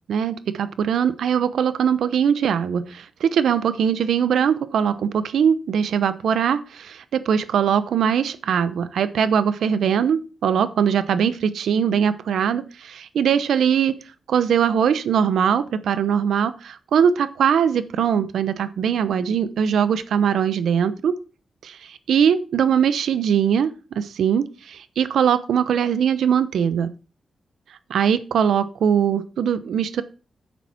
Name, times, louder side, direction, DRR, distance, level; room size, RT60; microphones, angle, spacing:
voice 1, 0.1-13.9 14.3-21.1 21.6-23.7 24.0-26.9 27.9-30.0, right 8 dB, 90° right, 14 dB, 0.8 m, -21 dB
10.0 x 7.2 x 4.4 m, 0.34 s
cardioid pair, 80°, 0 cm